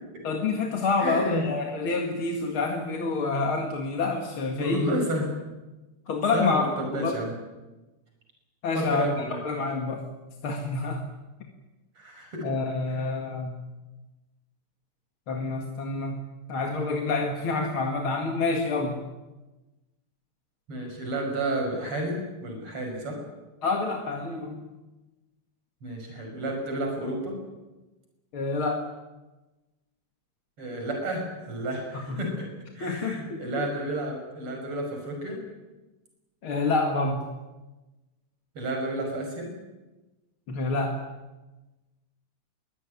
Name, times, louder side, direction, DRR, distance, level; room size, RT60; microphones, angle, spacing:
voice 1, 0.2-4.9 6.1-7.2 8.6-9.1 9.4-10.1 10.4-11.0 12.4-13.6 15.3-16.2 16.5-19.0 23.6-24.7 28.3-28.8 32.1-32.2 32.8-33.7 36.4-37.2 40.5-41.0, left 3 dB, 70° left, 2 dB, 2.9 m, -28 dB
voice 2, 1.0-1.5 4.6-5.3 6.3-7.3 8.7-9.4 12.0-12.5 12.9-13.1 20.7-23.2 25.8-27.4 30.6-32.5 32.7-35.4 38.5-39.5, right 1 dB, 80° right, 2 dB, 6.9 m, -31 dB
23.0 x 18.0 x 9.7 m, 1.1 s
omnidirectional pair, 2.4 m